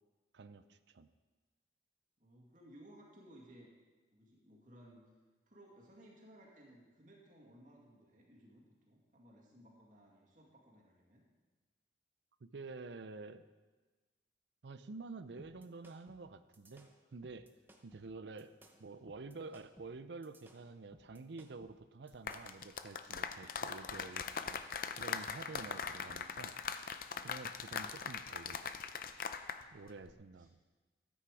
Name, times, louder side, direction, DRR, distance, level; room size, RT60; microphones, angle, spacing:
voice 1, 0.3-1.1 12.4-13.4 14.6-17.5 17.8-18.5 18.8-24.6 24.9-26.5 27.2-28.6 29.7-30.6, right 3 dB, 75° right, 12 dB, 0.5 m, -49 dB
voice 2, 2.2-3.7 4.1-5.1 5.5-11.2 23.3-23.6 29.6-30.5, right 1 dB, 45° right, -3 dB, 2.1 m, -60 dB
sound 1, 15.4-22.6, right 1 dB, 10° right, 0.8 m, -62 dB
sound 2, 22.1-29.6 29.9-30.1, left 6 dB, 50° left, 0.5 m, -41 dB
13.0 x 8.6 x 4.8 m, 1.3 s
head